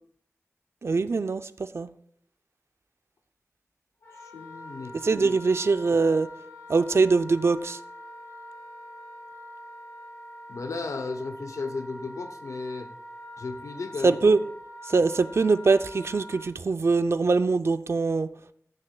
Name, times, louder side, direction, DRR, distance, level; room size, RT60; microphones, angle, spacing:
voice 1, 0.8-1.9 5.0-6.3 6.7-7.8 14.0-14.4 14.9-18.3, right 4 dB, 55° right, 0.4 m, -23 dB
Wind instrument woodwind instrument, 4.0-16.5, equal, 70° left, 2.7 m, -44 dB
voice 2, 4.2-5.0 10.5-12.9 13.4-14.2, left 3 dB, 90° left, 0.7 m, -34 dB
15.0 x 6.5 x 2.2 m
wide cardioid pair, 85°, 5 cm